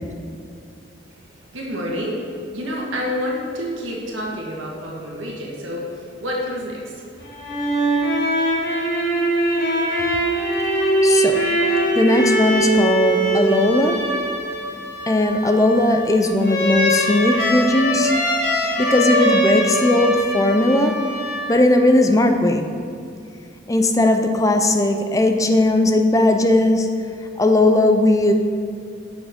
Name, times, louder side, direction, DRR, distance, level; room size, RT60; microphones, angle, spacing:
voice 1, 1.5-6.9, equal, 85° right, -3 dB, 1.5 m, -28 dB
sound 1, 7.2-21.9, right 1 dB, 50° left, 1.7 m, -22 dB
voice 2, 11.0-11.4 12.0-14.0 15.1-18.1 18.8-20.9 21.5-22.7 23.7-26.9 27.4-28.3, left 1 dB, 15° left, 5 dB, 0.5 m, -17 dB
7.2 x 6.2 x 5.2 m, 2.4 s
head